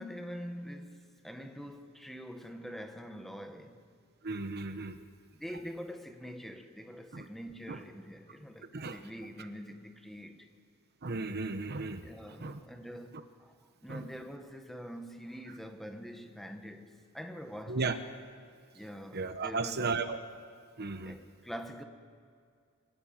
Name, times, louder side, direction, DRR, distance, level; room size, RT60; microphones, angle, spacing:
voice 1, 0.0-3.8 5.3-10.5 12.0-17.9 18.7-20.0 21.0-21.8, equal, ahead, 6 dB, 1.4 m, -45 dB
voice 2, 4.2-5.1 7.1-7.3 7.7-7.8 8.7-9.0 11.0-12.0 12.4-12.6 13.1-13.2 13.9-14.1 17.7-18.0 19.1-20.2 20.8-21.2, right 3 dB, 50° right, 9 dB, 1.0 m, -35 dB
25.0 x 17.0 x 8.9 m, 2.3 s
head